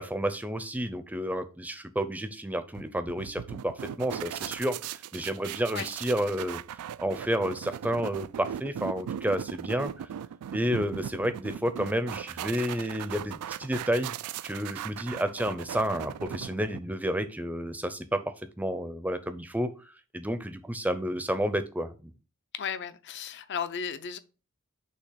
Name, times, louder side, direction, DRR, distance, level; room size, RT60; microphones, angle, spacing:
voice 1, 0.0-10.1 10.5-14.1 14.4-22.1, equal, 5° right, 0.5 m, -31 dB
sound 1, 2.7-17.1, right 9 dB, 90° right, 0.3 m, -38 dB
voice 2, 22.5-24.2, left 7 dB, 50° left, 0.6 m, -34 dB
6.6 x 2.9 x 5.7 m
head